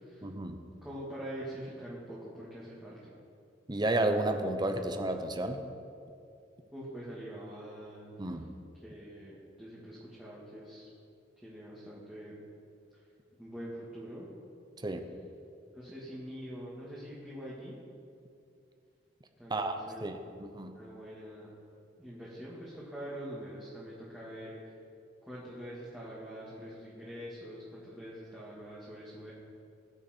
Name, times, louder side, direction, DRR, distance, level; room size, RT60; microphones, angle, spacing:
voice 1, 0.2-0.6 3.7-5.6 8.2-8.5 14.8-15.1 19.5-20.8, right 2 dB, 25° right, 7 dB, 0.8 m, -32 dB
voice 2, 0.8-3.1 6.7-8.1 8.8-9.3 9.6-10.9 11.4-12.3 13.4-14.3 15.8-17.7 19.4-20.1 20.7-21.5 22.0-24.5 25.2-29.3, equal, 5° right, -9 dB, 2.2 m, -44 dB
20.0 x 7.3 x 4.5 m, 2.5 s
head